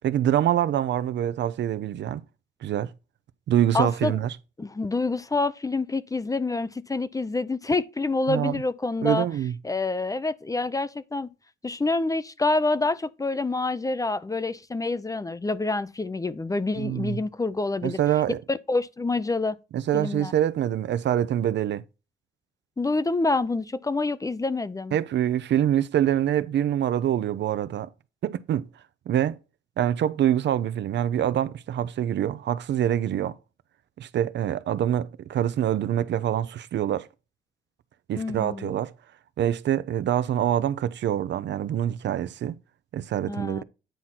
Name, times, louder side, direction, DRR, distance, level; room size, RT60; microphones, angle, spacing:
voice 1, 0.0-2.2 2.6-2.9 3.5-4.4 8.3-8.6 9.0-9.5 16.8-17.2 17.8-18.4 19.7-21.8 24.9-27.9 28.2-28.7 29.1-29.4 29.8-33.4 34.0-37.1 38.1-38.9 39.4-42.6 42.9-43.6, right 11 dB, 65° right, 0.7 m, -25 dB
voice 2, 3.7-4.1 4.6-9.3 9.6-11.3 11.6-18.0 18.5-19.6 19.9-20.3 22.8-25.0 38.2-38.8 43.3-43.6, left 3 dB, 15° left, 0.5 m, -27 dB
9.3 x 4.3 x 4.1 m
cardioid pair, 90°, 20 cm